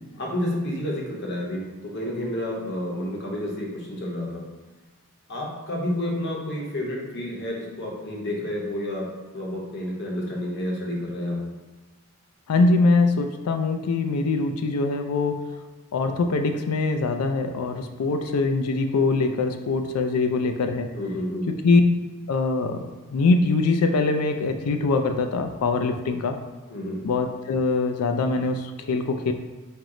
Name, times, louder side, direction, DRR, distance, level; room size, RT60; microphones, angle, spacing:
voice 1, 0.2-4.5 5.3-9.1 9.3-11.4 20.9-21.5 26.1-26.2 26.7-27.0, left 1 dB, 50° left, -2 dB, 0.8 m, -30 dB
voice 2, 12.5-15.4 15.9-20.9 21.5-21.8 22.3-26.4 27.0-29.3, left 3 dB, 85° left, 6 dB, 0.4 m, -23 dB
4.4 x 2.0 x 3.7 m, 1.3 s
head